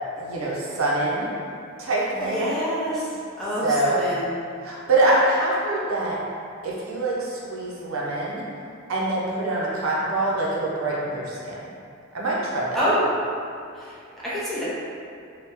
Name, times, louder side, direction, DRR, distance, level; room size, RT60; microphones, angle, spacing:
voice 1, 0.2-1.3 1.8-2.5 3.6-4.0 4.6-6.2 6.6-8.5 8.9-11.7 12.1-12.8, right 2 dB, 80° right, -5 dB, 0.6 m, -24 dB
voice 2, 2.1-4.3 12.7-13.1 13.7-14.6, equal, ahead, -10 dB, 0.6 m, -27 dB
2.8 x 2.2 x 3.5 m, 2.4 s
head